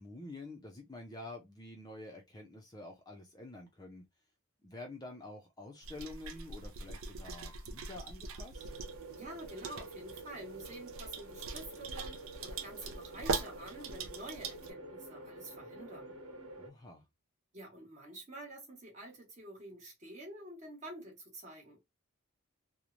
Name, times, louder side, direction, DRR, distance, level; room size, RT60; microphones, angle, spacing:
voice 1, 0.0-4.0 4.6-8.7 16.6-17.0, left 2 dB, 15° left, 0.5 m, -48 dB
sound 1, 5.8-14.7, right 4 dB, 70° right, 0.5 m, -42 dB
sound 2, 8.5-16.7, right 2 dB, 85° right, 0.9 m, -49 dB
voice 2, 9.1-16.2 17.5-21.8, right 1 dB, 30° right, 1.1 m, -48 dB
3.0 x 2.1 x 2.4 m
head